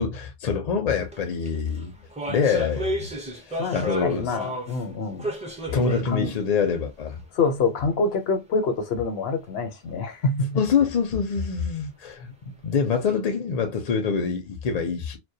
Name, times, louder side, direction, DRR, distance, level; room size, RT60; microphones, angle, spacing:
voice 1, 0.0-1.9 2.3-2.9 3.5-4.3 5.7-7.2 10.6-12.3 12.6-15.2, left 6 dB, 50° left, 0.5 m, -25 dB
sound 1, 1.0-1.2 1.4-4.8 5.2-6.1 6.4-6.5 7.2-7.3, equal, 10° right, 0.4 m, -32 dB
voice 2, 3.6-5.3 5.7-6.3 7.3-10.6, left 3 dB, 80° left, 0.9 m, -26 dB
2.2 x 2.1 x 2.6 m
omnidirectional pair, 1.0 m